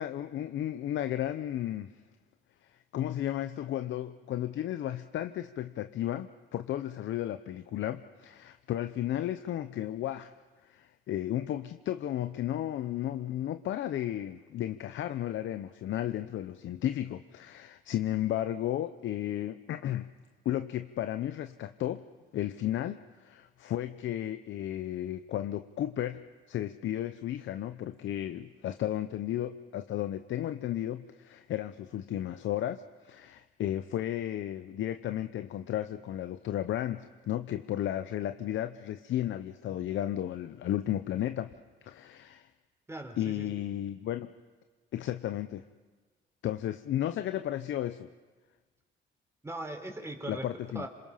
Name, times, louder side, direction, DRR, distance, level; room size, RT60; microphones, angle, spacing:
voice 1, 0.0-1.9 2.6-10.3 10.6-20.1 20.4-22.1 22.3-41.5 41.8-42.5 43.2-44.4 44.9-45.6 46.4-48.1 50.3-50.9, left 12 dB, 75° left, 10 dB, 0.8 m, -34 dB
voice 2, 42.9-43.5 49.4-50.5 50.7-50.9, right 1 dB, 15° right, 4 dB, 4.1 m, -39 dB
27.0 x 26.5 x 5.8 m, 1.4 s
cardioid pair, 90°, 20 cm